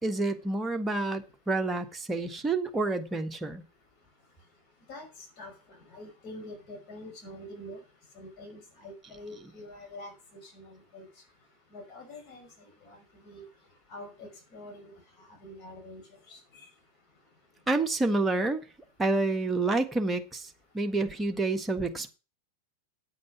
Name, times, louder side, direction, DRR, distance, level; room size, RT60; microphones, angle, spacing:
voice 1, 0.0-3.6 17.7-18.7 19.0-22.1, right 3 dB, 10° right, 1.6 m, -28 dB
voice 2, 5.4-7.8 8.2-11.1 11.7-13.0 13.2-13.5 13.9-15.0 15.3-16.0 16.3-16.4, left 1 dB, 35° left, 5.4 m, -46 dB
9.3 x 8.4 x 6.1 m
figure-of-eight pair, 90°, 0 cm